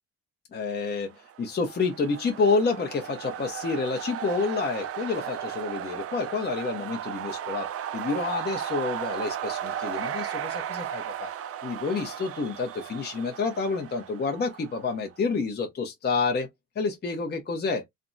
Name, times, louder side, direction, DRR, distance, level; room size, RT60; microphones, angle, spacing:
voice 1, 0.5-1.1 1.4-7.7 7.9-11.3 11.6-16.5 16.8-17.8, left 4 dB, 35° left, 0.7 m, -28 dB
sound 1, 1.2-15.0, right 10 dB, 50° right, 0.5 m, -35 dB
3.3 x 2.0 x 2.5 m
cardioid pair, 90°, 30 cm